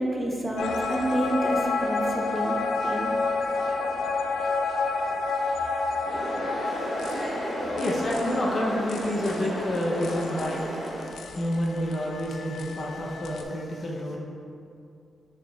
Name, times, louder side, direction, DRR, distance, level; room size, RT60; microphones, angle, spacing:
voice 1, 0.0-3.1, right 1 dB, 10° right, -2 dB, 0.5 m, -29 dB
sound 1, 0.6-13.4, left 3 dB, 80° left, 0.3 m, -30 dB
sound 2, 6.0-11.0, equal, 55° right, 1.2 m, -33 dB
voice 2, 6.6-7.2 7.6-10.9 11.4-14.2, left 1 dB, 35° left, -2 dB, 0.6 m, -29 dB
6.3 x 3.6 x 2.3 m, 2.5 s
wide cardioid pair, 175°, 0 cm